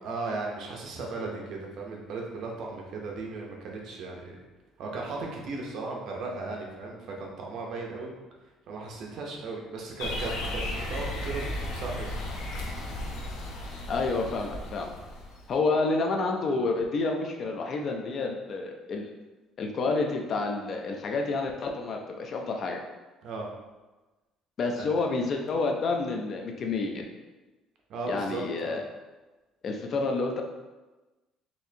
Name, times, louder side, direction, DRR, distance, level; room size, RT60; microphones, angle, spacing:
voice 1, 0.0-4.4 4.8-8.1 8.7-12.1 23.2-23.5 24.8-24.9 27.9-28.8, right 3 dB, 50° right, 0 dB, 0.6 m, -36 dB
sound 1, 10.0-15.5, left 1 dB, 80° left, 0.7 m, -35 dB
voice 2, 13.9-14.9 15.5-19.1 19.6-22.8 24.6-27.1 28.1-28.8 29.6-30.4, left 3 dB, 35° left, 2 dB, 0.4 m, -29 dB
4.2 x 2.6 x 2.7 m, 1.1 s
cardioid pair, 175°, 0 cm